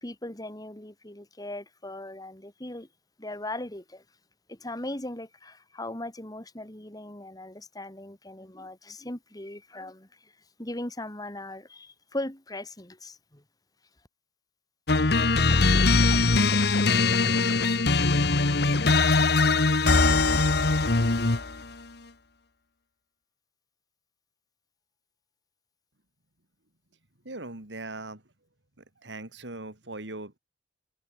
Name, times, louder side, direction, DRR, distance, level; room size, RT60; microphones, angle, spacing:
voice 1, 0.0-2.9 3.2-4.0 4.5-10.3 10.6-13.4, left 1 dB, 20° left, 2.7 m, -39 dB
sound 1, 14.9-21.6, left 3 dB, 60° left, 1.4 m, -21 dB
voice 2, 27.3-28.2 29.0-30.4, right 2 dB, 85° right, 3.6 m, -39 dB
head